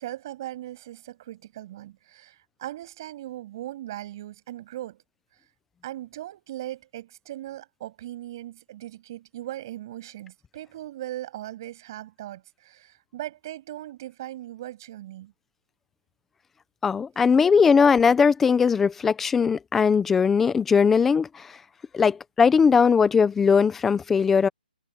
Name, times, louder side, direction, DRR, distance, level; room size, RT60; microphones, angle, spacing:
voice 1, 0.0-5.0 5.8-15.3, right 14 dB, 20° right, 7.9 m, -39 dB
voice 2, 16.8-21.3 21.9-24.5, left 6 dB, 5° left, 0.6 m, -19 dB
hypercardioid pair, 175°, 5 cm